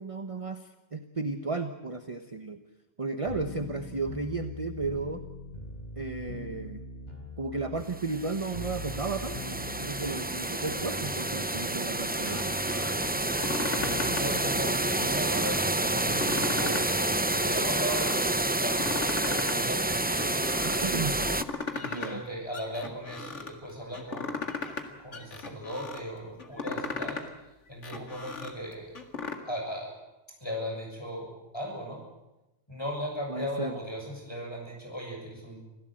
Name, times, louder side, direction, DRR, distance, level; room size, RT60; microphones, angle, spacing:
voice 1, 0.0-2.6 3.0-5.2 6.0-6.8 7.4-12.4 20.6-21.2 21.8-22.2 33.3-33.8, right 3 dB, 30° right, 7 dB, 1.1 m, -34 dB
sound 1, 3.3-17.4, equal, 35° left, 4.1 m, -42 dB
sound 2, 7.9-21.4, right 2 dB, 10° right, 0.5 m, -29 dB
sound 3, 12.2-12.9 13.3-14.4 14.7-15.6 16.0-17.0 17.3-18.2 18.6-19.6 19.9-20.8 21.2-22.2 22.5-23.5 23.9-24.9 25.1-26.0 26.4-27.3 27.7-29.3, left 4 dB, 85° left, 2.4 m, -37 dB
voice 2, 13.3-16.9 17.3-20.3 21.2-21.3 21.7-24.4 25.0-27.2 27.7-29.0 29.4-29.9 30.4-32.0 32.7-35.6, equal, 20° left, 0 dB, 7.1 m, -37 dB
26.0 x 16.5 x 7.8 m, 0.99 s
omnidirectional pair, 1.2 m